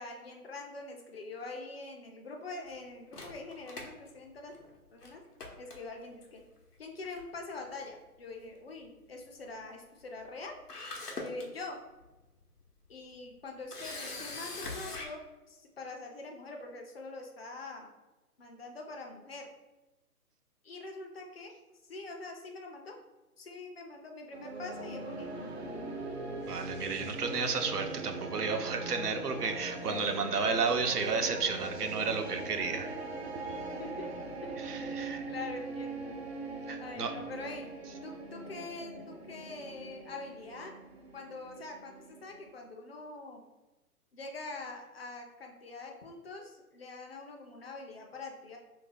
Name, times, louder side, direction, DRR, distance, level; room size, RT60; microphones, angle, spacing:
voice 1, 0.0-4.6 4.9-5.3 5.6-6.4 6.8-10.6 11.2-11.8 12.9-17.9 18.4-19.5 20.6-21.5 21.9-22.9 23.4-25.5 33.8-34.1 34.4-34.5 34.8-36.2 36.8-37.7 38.0-40.8 41.1-43.4 44.1-48.6, left 3 dB, 45° left, 2 dB, 0.5 m, -44 dB
Camera, 3.1-4.7 5.0-5.1 5.4-6.2 7.2-7.4 7.7-7.8 10.3-10.4 10.7-11.4 12.0-12.1 13.7-15.1, left 3 dB, 90° left, 0.9 m, -41 dB
sound 1, 24.3-42.5, right 3 dB, 50° right, 0.5 m, -41 dB
voice 2, 26.5-32.9 34.6-35.2 36.7-37.1, right 5 dB, 85° right, 5 dB, 0.6 m, -32 dB
2.9 x 2.7 x 3.8 m, 1.1 s
figure-of-eight pair, 135°, 45 cm